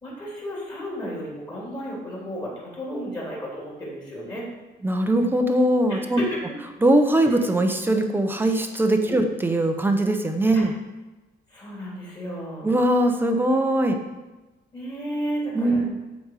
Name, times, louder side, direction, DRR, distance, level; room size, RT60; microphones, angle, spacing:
voice 1, 0.0-4.4 5.9-6.4 7.3-7.4 9.0-9.2 10.5-10.6 11.5-12.7 14.7-15.8, equal, 25° left, -5 dB, 3.5 m, -33 dB
voice 2, 4.8-6.2 6.8-10.7 12.6-14.0 15.5-15.8, right 1 dB, 10° right, 5 dB, 0.8 m, -21 dB
14.0 x 5.3 x 4.8 m, 1.1 s
cardioid pair, 170°, 18 cm